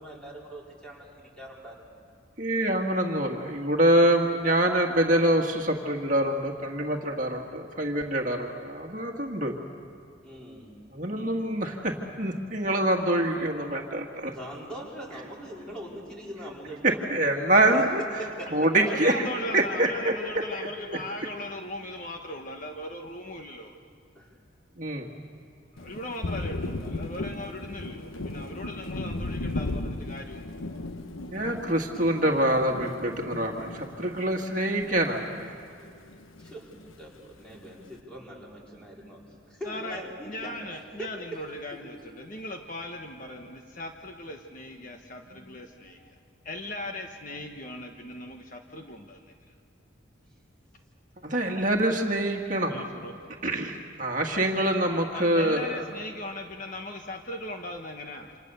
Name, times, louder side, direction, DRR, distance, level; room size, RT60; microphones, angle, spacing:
voice 1, 0.0-2.0 10.2-10.7 14.3-17.0 17.6-17.8 18.2-18.5 18.8-18.9 24.1-24.3 36.4-39.2 39.5-41.4 41.7-42.0, right 1 dB, 5° left, -4 dB, 4.6 m, -42 dB
voice 2, 2.4-9.5 10.9-14.3 16.8-18.0 18.5-19.1 19.5-20.1 20.9-21.0 24.8-25.1 28.3-28.5 31.3-35.5 51.2-52.8 53.4-55.9, right 1 dB, 40° right, 1 dB, 1.8 m, -25 dB
voice 3, 18.8-23.7 25.7-30.5 39.6-46.1 46.4-49.2 52.7-53.1 55.1-58.3, left 1 dB, 40° left, 3 dB, 1.3 m, -38 dB
Thunder, 25.8-35.5 35.8-37.0, left 2 dB, 90° left, 1.1 m, -36 dB
28.0 x 27.0 x 6.9 m, 2.4 s
head